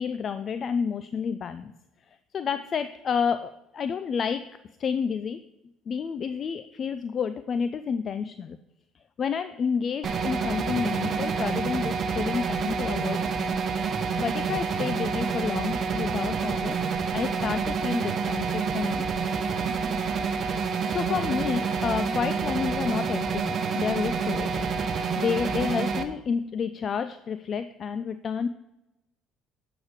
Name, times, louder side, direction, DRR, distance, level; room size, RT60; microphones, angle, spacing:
voice 1, 0.0-1.7 2.3-4.5 4.8-5.4 5.9-8.6 9.2-13.6 14.2-16.8 17.1-19.3 20.6-24.7 25.2-28.5, left 6 dB, 45° left, 11 dB, 0.4 m, -30 dB
sound 1, 10.0-26.0, right 5 dB, 45° right, 0.8 m, -28 dB
8.0 x 4.9 x 4.9 m, 0.93 s
supercardioid pair, 75°, 0 cm